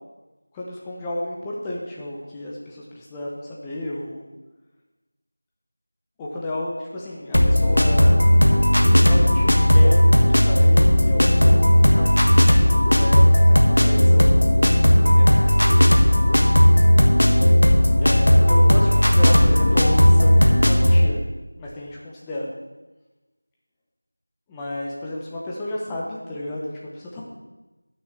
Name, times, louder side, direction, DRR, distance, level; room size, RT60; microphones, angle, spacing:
voice 1, 0.5-4.3 6.2-8.3 9.0-11.6 12.0-14.3 15.0-15.7 18.0-21.3 21.5-22.5 24.5-27.2, left 1 dB, 5° left, -4 dB, 0.8 m, -32 dB
sound 1, 7.3-21.1, left 1 dB, 75° left, 1.5 m, -15 dB
8.8 x 6.2 x 7.3 m, 1.1 s
figure-of-eight pair, 175°, 0 cm